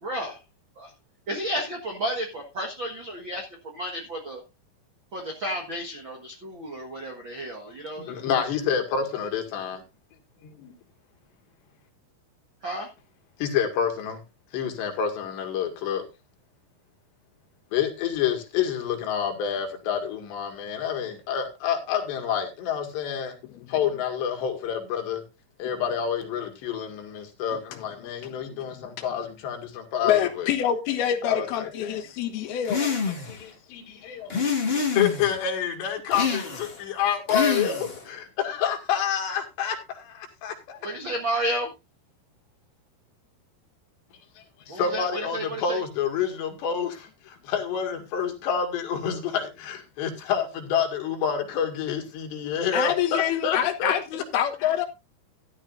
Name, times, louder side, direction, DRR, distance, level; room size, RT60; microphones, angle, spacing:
voice 1, 0.0-0.4 0.8-0.9 1.3-4.4 5.1-8.3 12.6-12.9 40.8-41.7 44.7-45.8, right 1 dB, 60° right, 1.2 m, -32 dB
voice 2, 8.0-9.8 10.6-10.7 13.4-14.2 14.5-16.0 17.7-23.4 23.7-25.2 25.6-30.5 31.3-32.0 32.4-34.3 34.8-40.8 44.4-53.9 54.6-54.9, left 8 dB, 85° left, 4.2 m, -28 dB
voice 3, 30.0-32.8 52.7-54.9, left 10 dB, 70° left, 2.9 m, -26 dB
sound 1, 32.6-33.4 34.3-35.3 36.1-36.8 37.3-38.1, left 5 dB, 55° left, 0.6 m, -27 dB
13.5 x 12.0 x 2.6 m
omnidirectional pair, 4.8 m